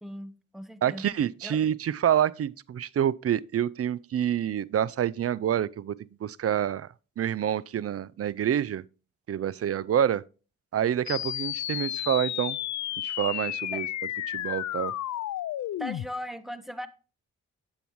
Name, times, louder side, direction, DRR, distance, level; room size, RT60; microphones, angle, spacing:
voice 1, 0.0-1.2 1.4-1.6 13.7-13.8 15.8-16.9, equal, ahead, 1.1 m, -38 dB
voice 2, 0.8-5.9 6.2-6.9 7.2-8.8 9.3-10.2 10.7-12.6 13.0-13.9 14.3-14.9, right 10 dB, 45° right, 0.5 m, -27 dB
sound 1, 11.1-16.1, left 13 dB, 55° left, 0.4 m, -32 dB
8.8 x 8.0 x 3.1 m
supercardioid pair, 40°, 34 cm